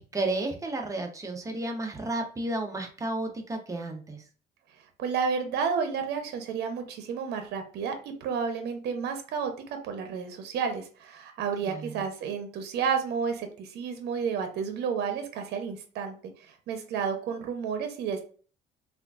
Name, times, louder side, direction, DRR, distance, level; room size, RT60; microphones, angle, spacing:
voice 1, 0.0-4.2 11.6-12.0, right 2 dB, 20° right, 3 dB, 0.7 m, -32 dB
voice 2, 5.0-9.5 9.8-18.2, right 6 dB, 75° right, 6 dB, 0.7 m, -31 dB
3.5 x 2.5 x 2.4 m, 0.40 s
cardioid pair, 110°, 17 cm